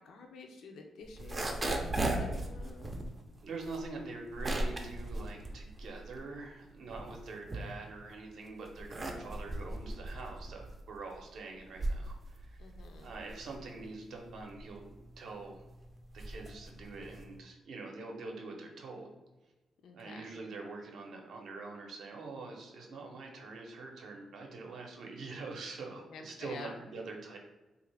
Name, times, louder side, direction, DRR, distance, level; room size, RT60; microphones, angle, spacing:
voice 1, 0.0-3.1 12.6-13.1 19.8-20.3 26.1-26.7, left 4 dB, 75° left, 3 dB, 0.4 m, -49 dB
sound 1, 1.0-6.3 6.7-8.1 8.6-17.4, right 2 dB, 20° right, 0.4 m, -38 dB
voice 2, 3.4-12.6 13.0-15.6 16.1-19.1 19.9-27.4, right 3 dB, 65° right, 1 dB, 0.6 m, -44 dB
3.0 x 2.4 x 3.3 m, 1.1 s
wide cardioid pair, 155°, 0 cm